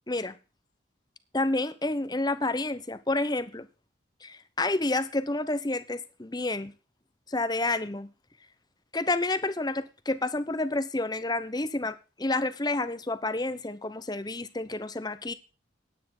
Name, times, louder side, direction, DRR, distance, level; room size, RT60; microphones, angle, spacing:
voice 1, 0.1-0.4 1.3-3.7 4.2-6.7 7.3-8.1 8.9-15.3, left 2 dB, 20° left, 0.9 m, -29 dB
10.0 x 9.3 x 6.0 m
head